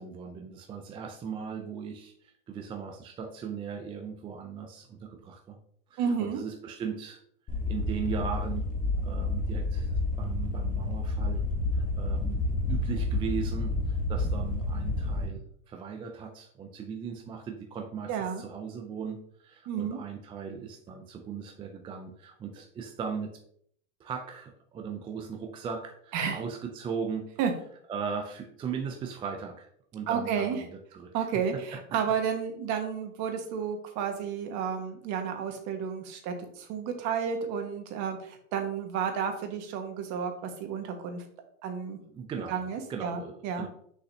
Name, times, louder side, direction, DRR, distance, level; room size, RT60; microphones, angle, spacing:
voice 1, 0.0-5.6 5.9-7.2 7.7-8.7 9.0-11.4 11.7-23.3 24.0-27.3 27.9-31.3 31.5-32.1 42.1-42.6 42.9-43.7, right 6 dB, 15° right, 3 dB, 0.4 m, -38 dB
voice 2, 6.0-6.4 18.1-18.4 19.7-20.0 26.1-26.4 27.4-27.5 30.1-30.6 31.1-41.2 41.6-42.0 42.5-43.7, right 7 dB, 45° right, 5 dB, 1.5 m, -31 dB
sound 1, 7.5-15.3, left 2 dB, 20° left, 1.2 m, -29 dB
6.5 x 5.6 x 2.7 m, 0.65 s
hypercardioid pair, 115°, 40 cm